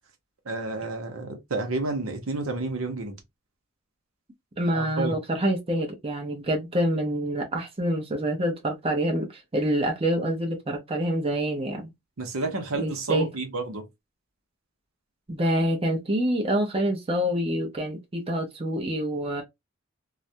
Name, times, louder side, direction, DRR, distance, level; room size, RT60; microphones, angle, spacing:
voice 1, 0.5-3.2 4.7-5.2 12.2-13.9, right 2 dB, 85° right, 0.8 m, -30 dB
voice 2, 4.6-11.9 12.8-13.3 15.3-19.4, right 1 dB, 30° right, 0.6 m, -26 dB
2.4 x 2.1 x 2.7 m
head